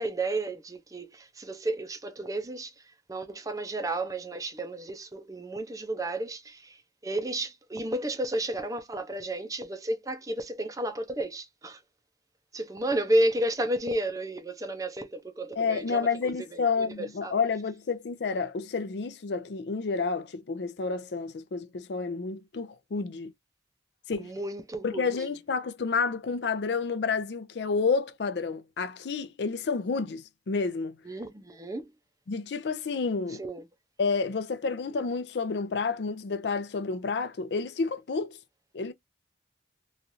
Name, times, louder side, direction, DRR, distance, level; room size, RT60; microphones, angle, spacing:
voice 1, 0.0-2.7 3.1-11.8 12.5-17.3 24.1-25.1 31.0-31.9 33.4-33.6, right 1 dB, 20° right, 0.5 m, -32 dB
voice 2, 15.6-23.3 24.1-24.3 24.8-31.0 32.3-33.4 34.0-38.4 38.7-38.9, left 4 dB, 75° left, 0.5 m, -30 dB
3.1 x 2.4 x 2.5 m
head